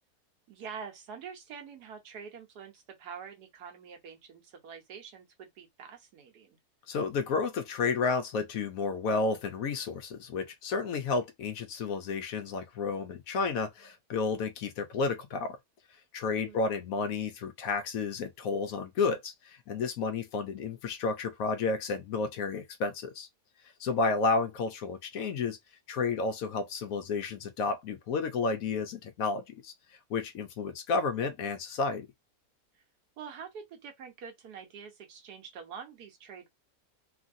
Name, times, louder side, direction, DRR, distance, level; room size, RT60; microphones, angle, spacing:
voice 1, 0.5-6.6 16.3-16.6 33.2-36.5, right 6 dB, 85° right, 1.4 m, -46 dB
voice 2, 6.9-15.6 16.1-23.3 23.8-25.6 25.9-29.7 30.1-32.1, left 4 dB, 70° left, 1.0 m, -31 dB
3.1 x 2.6 x 2.5 m
omnidirectional pair, 1.7 m